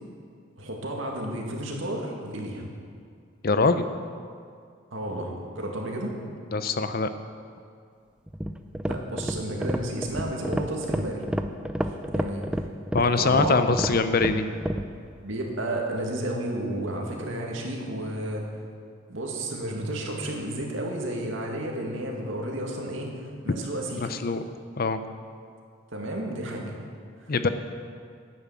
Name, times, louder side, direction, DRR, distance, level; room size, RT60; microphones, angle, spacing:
voice 1, 0.6-2.6 4.9-6.1 8.8-11.2 11.8-12.7 13.0-13.6 15.2-18.5 19.1-24.1 25.9-26.7 27.2-27.5, right 1 dB, 70° right, 0 dB, 2.1 m, -32 dB
voice 2, 3.4-3.8 6.5-7.1 12.9-14.6 24.0-24.4 24.8-25.0 27.3-27.5, left 4 dB, 45° left, 10 dB, 0.6 m, -23 dB
sound 1, 8.3-14.9, equal, 5° right, 0.4 m, -30 dB
10.5 x 9.1 x 7.3 m, 2.2 s
head